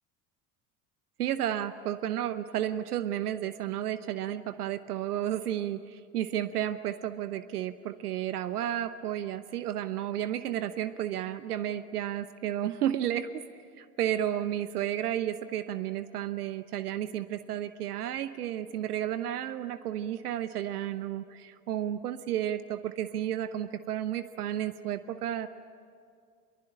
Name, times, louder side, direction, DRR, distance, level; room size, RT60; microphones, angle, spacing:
voice 1, 1.2-13.5 13.8-25.5, right 11 dB, 70° right, 13 dB, 0.9 m, -32 dB
24.5 x 23.0 x 10.0 m, 2.2 s
figure-of-eight pair, 70°, 47 cm